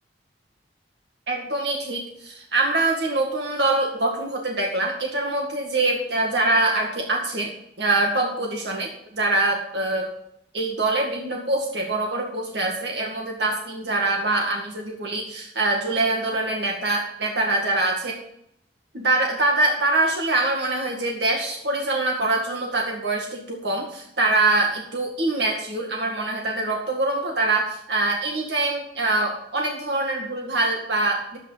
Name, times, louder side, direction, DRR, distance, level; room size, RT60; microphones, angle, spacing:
voice 1, 1.3-7.5 7.8-10.1 10.5-18.2 18.9-31.4, right 2 dB, 70° right, 1 dB, 2.0 m, -24 dB
11.0 x 8.8 x 5.1 m, 0.74 s
head